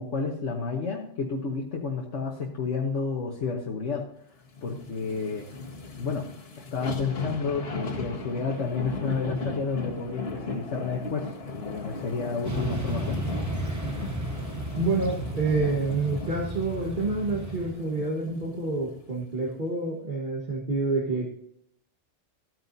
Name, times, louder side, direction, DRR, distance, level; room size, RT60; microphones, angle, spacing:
voice 1, 0.0-4.0 4.6-5.4 6.0-6.3 6.7-13.2, left 4 dB, 70° left, -1 dB, 1.5 m, -31 dB
sound 1, 4.5-19.0 19.4-19.5, left 3 dB, 55° left, 1.8 m, -37 dB
Motorcycle / Traffic noise roadway noise, 12.4-17.7, right 1 dB, 15° right, 0.8 m, -33 dB
voice 2, 14.8-21.3, right 3 dB, 40° right, -4 dB, 1.7 m, -28 dB
14.0 x 9.2 x 2.7 m, 0.70 s
omnidirectional pair, 1.3 m